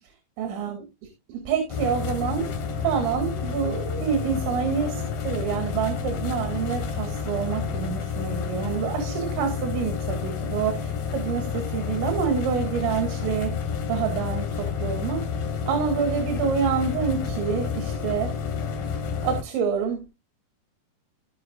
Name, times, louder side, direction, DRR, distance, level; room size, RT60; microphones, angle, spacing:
voice 1, 0.4-0.8 1.3-2.5 2.8-18.4 19.2-20.1, right 7 dB, 80° right, 4.1 m, -27 dB
sound 1, 1.7-19.4, left 6 dB, 60° left, 3.0 m, -30 dB
17.0 x 6.1 x 2.4 m
omnidirectional pair, 5.3 m